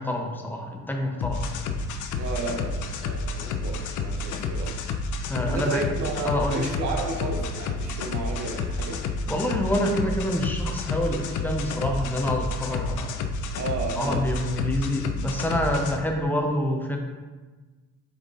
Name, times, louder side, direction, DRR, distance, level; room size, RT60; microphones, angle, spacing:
voice 1, 0.0-1.5 5.2-5.9 6.2-6.7 9.3-13.1 14.0-17.0, left 1 dB, 5° left, 2 dB, 0.6 m, -27 dB
sound 1, 1.2-16.0, left 3 dB, 75° left, 0.5 m, -30 dB
voice 2, 2.2-4.8 5.5-9.0 13.6-14.3, right 3 dB, 70° right, 2 dB, 0.8 m, -32 dB
4.9 x 4.0 x 2.4 m, 1.3 s
cardioid pair, 90°, 30 cm